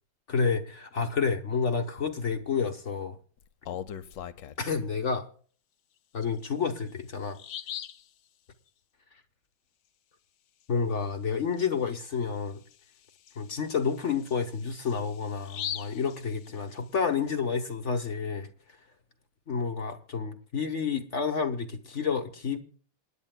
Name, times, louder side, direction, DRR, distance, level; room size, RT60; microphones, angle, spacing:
voice 1, 0.3-3.2 4.6-5.3 6.1-7.4 10.7-12.6 13.4-18.5 19.5-22.6, left 5 dB, 45° left, 7 dB, 1.1 m, -29 dB
Bird vocalization bird call bird song, 3.4-4.9 6.4-6.5 6.9-7.0 7.3-8.1 11.5-11.7 12.1-12.2 12.7-16.9, left 10 dB, 70° left, 1.4 m, -40 dB
27.5 x 10.5 x 2.2 m, 0.43 s
omnidirectional pair, 2.1 m